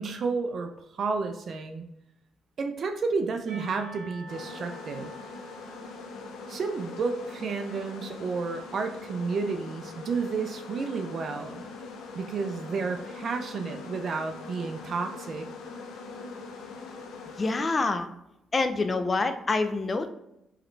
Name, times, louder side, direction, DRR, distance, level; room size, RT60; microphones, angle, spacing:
voice 1, 0.0-1.9 2.6-5.1 6.5-11.7 12.1-15.5, right 4 dB, 55° right, 6 dB, 0.5 m, -31 dB
Percussion / Church bell, 3.5-8.3, right 1 dB, 80° right, 1.1 m, -49 dB
sound 1, 4.3-17.6, left 4 dB, 85° left, 0.7 m, -42 dB
voice 2, 17.4-18.1 18.5-20.1, left 3 dB, 30° left, 8 dB, 0.6 m, -26 dB
4.8 x 3.2 x 3.1 m, 0.86 s
cardioid pair, 90°, 0 cm